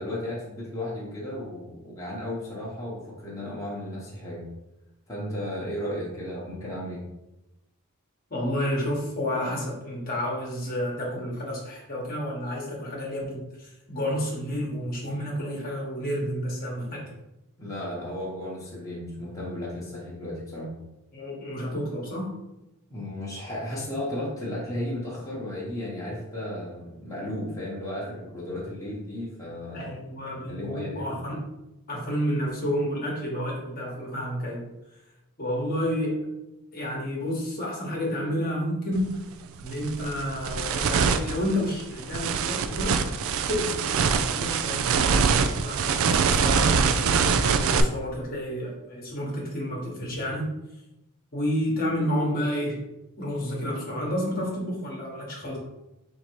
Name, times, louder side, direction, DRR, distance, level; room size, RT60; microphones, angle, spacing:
voice 1, 0.0-4.5 5.1-7.1 17.6-20.7 22.9-29.9 30.3-31.1, left 1 dB, 15° left, -6 dB, 1.0 m, -34 dB
voice 2, 8.3-17.1 21.1-22.3 29.7-31.5 31.9-34.6 35.4-36.2 36.7-39.2 39.6-43.0 43.5-45.2 45.6-50.5 51.3-52.8 53.2-55.6, equal, 40° left, -2 dB, 1.1 m, -30 dB
sound 1, 39.0-39.1 39.6-47.8, right 5 dB, 65° right, 0.3 m, -24 dB
3.9 x 2.7 x 4.5 m, 0.93 s
head